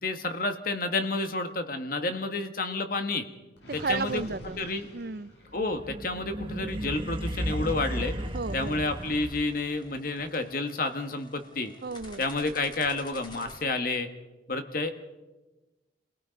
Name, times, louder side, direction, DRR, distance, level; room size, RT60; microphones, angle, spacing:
voice 1, 0.0-3.2 3.7-4.2 4.6-4.9 5.5-8.2 8.5-11.7 12.2-14.1 14.5-14.9, left 3 dB, 50° left, 7 dB, 1.6 m, -30 dB
Gurgling, 3.6-5.7, equal, 70° left, 6.6 m, -45 dB
voice 2, 3.8-4.6 4.9-5.3 8.3-8.8 11.8-12.2, right 4 dB, 55° right, 15 dB, 0.6 m, -32 dB
sound 1, 5.5-9.8, equal, 25° right, 1.6 m, -34 dB
sound 2, 8.2-13.6, left 2 dB, 25° left, 2.3 m, -51 dB
30.0 x 18.0 x 5.3 m, 1.1 s
head